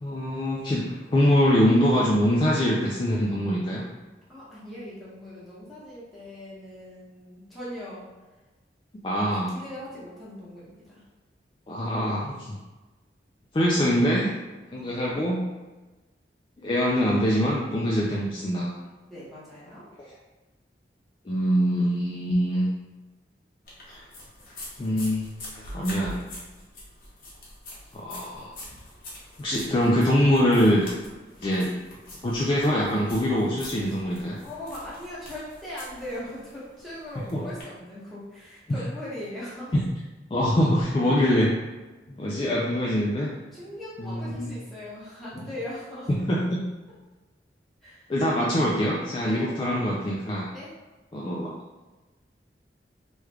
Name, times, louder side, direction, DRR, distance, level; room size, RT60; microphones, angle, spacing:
voice 1, 0.0-3.8 9.0-9.5 11.7-12.6 13.5-14.3 14.7-15.5 16.6-18.7 21.3-22.7 23.9-24.0 24.8-25.3 25.7-26.2 27.9-28.5 29.4-30.9 31.4-31.8 32.2-34.4 37.3-37.5 39.7-39.8 40.3-41.5 42.1-43.3 44.0-44.5 46.1-46.6 48.1-50.5 51.1-51.5, equal, 30° left, -4 dB, 0.3 m, -24 dB
voice 2, 4.3-8.0 9.5-11.0 19.1-19.9 34.4-39.7 42.2-42.5 43.5-46.1 47.8-48.1 49.2-49.5 50.5-50.7, left 1 dB, ahead, -10 dB, 1.0 m, -40 dB
sound 1, 23.7-37.6, left 1 dB, 50° left, 1.0 m, -44 dB
3.1 x 2.3 x 3.3 m, 1.2 s
head